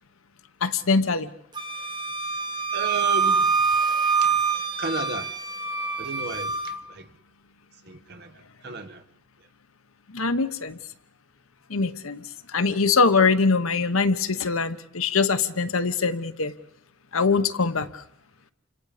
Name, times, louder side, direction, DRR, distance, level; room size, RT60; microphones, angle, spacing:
voice 1, 0.6-1.3 10.1-10.8 11.7-12.2 12.5-16.5 17.1-17.9, left 4 dB, 75° left, 1.1 m, -23 dB
Wind instrument woodwind instrument, 1.6-6.8, right 5 dB, 20° right, 1.4 m, -25 dB
voice 2, 2.7-3.6 4.2-4.4 4.8-5.3 6.0-7.1 7.9-9.0, right 3 dB, 50° right, 1.5 m, -34 dB
29.0 x 26.0 x 5.1 m
head